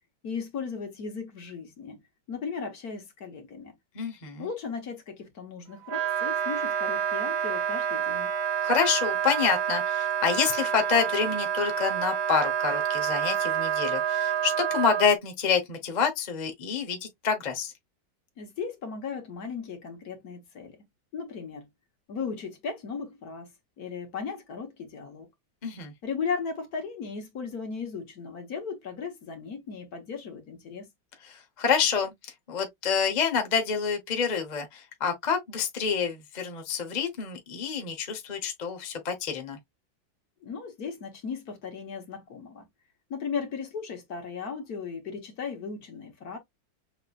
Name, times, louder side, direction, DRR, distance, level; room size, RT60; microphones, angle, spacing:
voice 1, 0.2-2.0 2.3-3.7 4.4-8.3 18.4-20.8 21.1-21.7 22.1-23.5 23.8-25.3 26.0-30.9 40.4-42.6 43.1-46.4, left 5 dB, 55° left, 1.5 m, -36 dB
voice 2, 3.9-4.5 8.6-17.7 25.6-25.9 31.2-39.6, left 6 dB, 30° left, 0.8 m, -28 dB
Wind instrument woodwind instrument, 5.8-15.1, right 9 dB, 90° right, 1.9 m, -28 dB
6.4 x 2.9 x 2.4 m
omnidirectional pair, 2.1 m